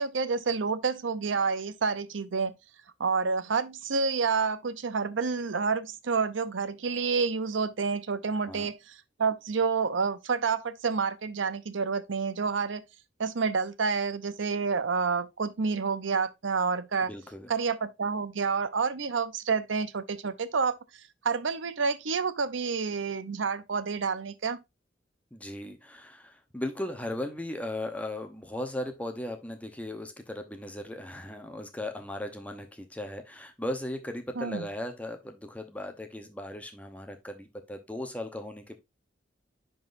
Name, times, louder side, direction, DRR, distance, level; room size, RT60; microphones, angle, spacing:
voice 1, 0.0-2.5 3.0-12.8 13.2-17.1 17.5-20.8 21.2-24.6 34.4-34.7, right 5 dB, 90° right, 0.7 m, -29 dB
voice 2, 17.1-17.5 25.3-38.8, left 1 dB, 10° left, 0.8 m, -37 dB
10.5 x 3.9 x 2.5 m
head